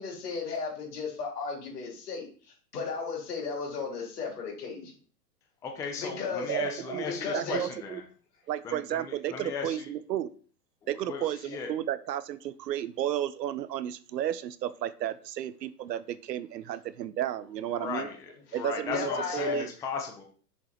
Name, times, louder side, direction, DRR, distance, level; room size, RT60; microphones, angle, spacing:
voice 1, 0.0-4.9 6.0-6.5 7.0-7.7 18.5-18.6 18.9-19.6, left 5 dB, 70° left, 0 dB, 3.6 m, -35 dB
voice 2, 5.6-8.0 8.6-9.9 10.9-11.7 17.7-20.2, left 5 dB, 5° left, 2 dB, 0.5 m, -37 dB
voice 3, 6.5-8.0 8.5-10.3 10.9-18.1 18.5-19.7, right 11 dB, 80° right, 15 dB, 0.8 m, -33 dB
6.8 x 4.8 x 4.4 m, 0.43 s
hypercardioid pair, 130°, 49 cm